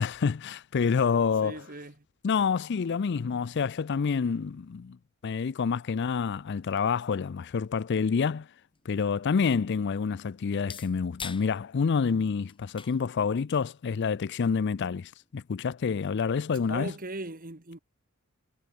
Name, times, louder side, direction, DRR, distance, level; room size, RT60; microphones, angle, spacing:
voice 1, 0.0-1.6 2.2-5.0 5.2-8.5 8.9-16.9, left 5 dB, 55° left, 0.4 m, -28 dB
voice 2, 1.4-1.9 16.7-17.8, right 2 dB, 40° right, 2.2 m, -38 dB
sound 1, 8.6-16.2, left 6 dB, 25° left, 4.6 m, -49 dB
head